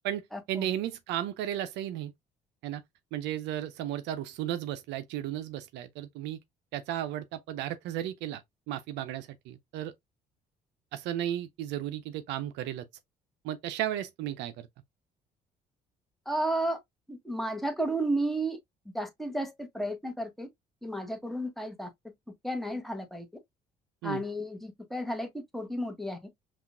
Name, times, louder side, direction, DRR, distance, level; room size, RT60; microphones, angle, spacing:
voice 1, 0.0-2.1 2.6-2.8 3.1-6.4 6.7-8.4 8.7-9.9 10.9-12.9 13.4-14.7 24.0-24.2, right 12 dB, 65° right, 0.5 m, -34 dB
voice 2, 16.3-16.8 17.1-18.6 18.9-20.5 20.8-21.9 22.4-23.2 24.0-25.3 25.5-26.2, right 1 dB, ahead, 1.1 m, -32 dB
5.6 x 2.4 x 2.3 m
hypercardioid pair, 50°, 20 cm